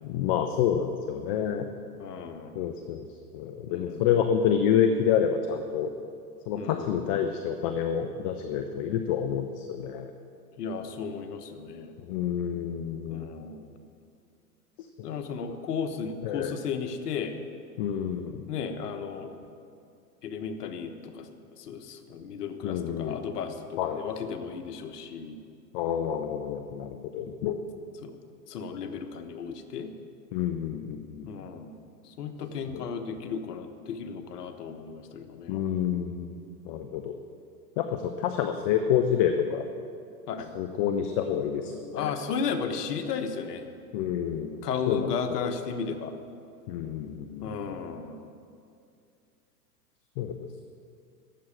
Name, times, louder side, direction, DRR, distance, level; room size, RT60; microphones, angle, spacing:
voice 1, 0.0-1.7 2.6-3.1 3.3-5.9 6.5-10.1 12.1-13.3 14.8-14.9 16.2-16.5 17.8-18.4 22.6-23.2 23.8-24.0 25.7-27.6 30.3-31.3 32.7-32.8 35.5-36.3 36.6-37.2 37.8-39.7 40.5-42.1 43.9-44.6 44.9-45.5 46.7-47.5 50.2-50.4, left 8 dB, 25° left, 7 dB, 0.3 m, -28 dB
voice 2, 1.9-2.6 3.7-4.1 6.5-7.0 10.6-11.9 13.1-13.8 15.0-17.4 18.5-19.3 20.2-25.4 28.0-28.2 28.5-29.9 31.3-35.6 40.3-40.5 41.9-43.7 44.6-46.1 47.4-48.2, left 6 dB, 70° left, 7 dB, 1.3 m, -34 dB
12.5 x 7.7 x 8.6 m, 2.5 s
hypercardioid pair, 115°, 49 cm